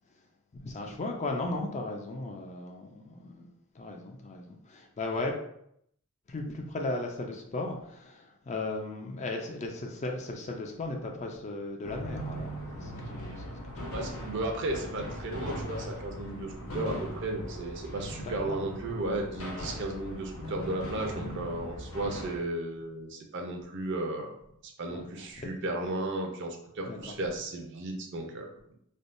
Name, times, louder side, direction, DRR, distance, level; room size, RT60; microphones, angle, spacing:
voice 1, 0.5-5.3 6.3-14.0 18.2-18.6 19.7-19.8 22.0-22.2 24.9-25.5 25.8-25.9 26.8-27.2, left 2 dB, 35° left, 2 dB, 0.4 m, -37 dB
sound 1, 11.8-22.4, equal, 90° left, 0.6 m, -39 dB
voice 2, 13.9-24.4 24.8-28.8, right 2 dB, 55° right, 2 dB, 0.5 m, -34 dB
3.4 x 2.2 x 2.5 m, 0.72 s
head